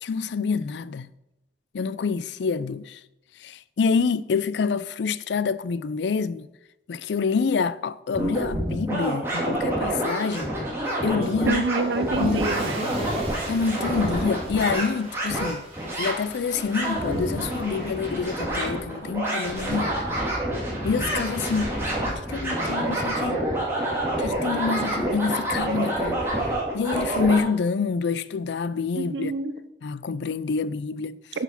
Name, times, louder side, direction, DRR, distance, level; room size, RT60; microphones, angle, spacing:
voice 1, 0.0-1.1 1.7-3.0 3.4-6.5 6.9-10.5 11.0-11.6 12.2-12.5 13.5-15.7 16.0-20.0 20.8-21.8 22.3-23.4 24.2-26.2 26.7-29.3 29.8-31.2, left 5 dB, 75° left, 0.4 m, -27 dB
sound 1, 8.1-27.4, right 1 dB, 15° right, 2.4 m, -27 dB
Car / Engine starting / Accelerating revving vroom, 11.2-18.3, right 1 dB, 30° right, 2.2 m, -41 dB
voice 2, 11.4-12.8 28.9-29.5 31.3-31.4, right 3 dB, 85° right, 0.7 m, -27 dB
8.3 x 5.9 x 5.9 m
head